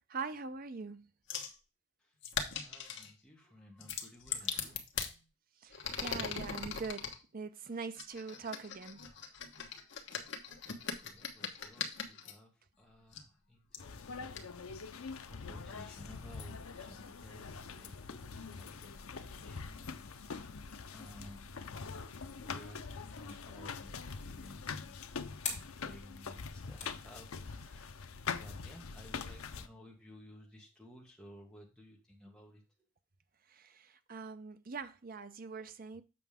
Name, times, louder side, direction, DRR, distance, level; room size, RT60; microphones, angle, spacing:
voice 1, 0.1-1.1 4.5-4.7 5.6-9.0 33.5-36.0, right 5 dB, 40° right, 0.6 m, -43 dB
sound 1, 1.3-1.6 2.2-3.1 3.8-5.1 5.7-7.2 8.0-12.3 13.1-13.2 13.7-13.8 14.3-14.4, left 6 dB, 55° left, 1.2 m, -40 dB
voice 2, 2.5-4.9 11.0-20.6 20.9-21.9 22.1-32.9, equal, 5° left, 1.7 m, -56 dB
sound 2, 13.8-29.7, left 5 dB, 80° left, 0.7 m, -44 dB
sound 3, 16.1-27.2, left 5 dB, 35° left, 2.5 m, -51 dB
7.7 x 5.9 x 3.5 m
head